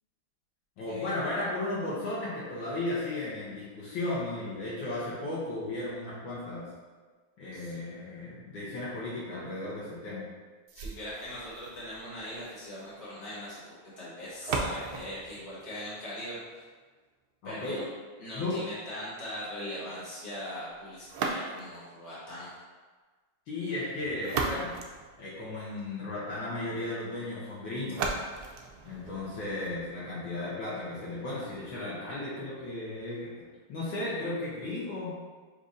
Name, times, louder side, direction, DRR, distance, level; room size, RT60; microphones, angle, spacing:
voice 1, 0.8-6.7 7.4-10.2 17.4-17.8 18.3-18.6 23.5-24.7 25.2-28.1 28.8-33.3 33.7-35.1, left 2 dB, 70° left, -8 dB, 1.5 m, -35 dB
voice 2, 10.7-16.4 17.4-17.8 18.2-22.5, equal, 30° left, -9 dB, 1.6 m, -40 dB
sound 1, 10.7-16.7 21.0-21.9 23.9-25.9 27.9-29.9, right 4 dB, 80° right, 0.8 m, -37 dB
6.3 x 2.6 x 2.6 m, 1.4 s
omnidirectional pair, 2.3 m